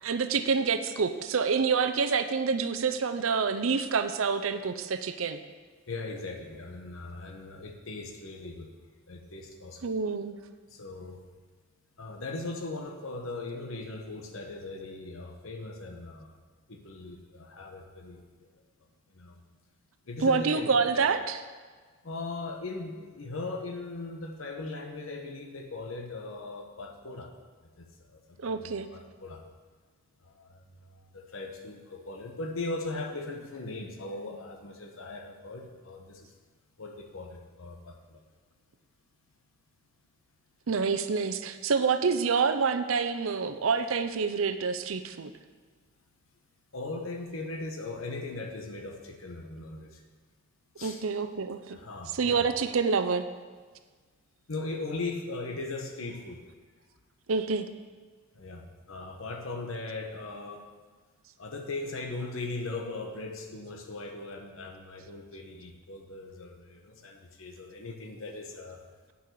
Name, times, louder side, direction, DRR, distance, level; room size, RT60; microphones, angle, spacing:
voice 1, 0.0-5.4 9.8-10.4 20.2-21.4 28.4-28.9 40.7-45.3 50.8-51.8 52.1-53.3 57.3-57.7, right 5 dB, 85° right, 10 dB, 0.6 m, -27 dB
voice 2, 5.9-8.7 9.1-9.8 10.7-11.2 12.0-16.4 16.7-18.2 19.2-19.4 20.1-21.1 22.0-27.3 27.8-27.9 28.1-29.4 30.2-36.3 36.8-38.2 46.7-50.0 50.8-51.0 51.7-52.5 54.5-56.4 58.4-60.6 61.4-68.8, left 2 dB, 90° left, 3 dB, 1.1 m, -39 dB
9.3 x 5.5 x 6.4 m, 1.5 s
head